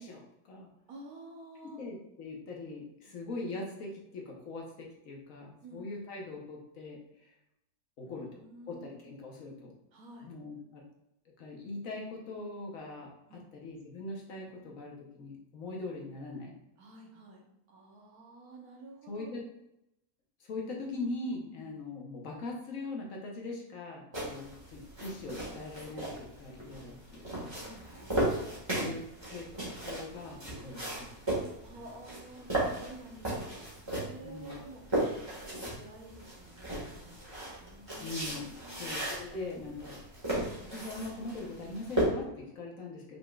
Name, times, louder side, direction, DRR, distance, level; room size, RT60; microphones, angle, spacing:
voice 1, 0.0-0.7 1.8-7.0 8.0-8.4 8.7-9.7 10.2-10.8 11.4-16.5 19.1-19.4 20.4-27.5 28.7-29.4 29.8-31.3 34.2-34.6 38.0-38.5 38.8-40.0 40.7-43.2, left 2 dB, 65° left, 0 dB, 1.3 m, -41 dB
voice 2, 0.9-1.8 3.1-3.2 5.6-6.0 8.0-9.0 9.9-10.4 13.3-13.5 16.8-19.3 21.4-21.8 27.6-28.3 31.6-37.3 37.6-38.9, right 2 dB, 75° right, 0 dB, 1.4 m, -51 dB
sound 1, 24.1-42.0, right 1 dB, 20° right, 1.6 m, -36 dB
5.7 x 3.8 x 2.3 m, 0.84 s
omnidirectional pair, 1.6 m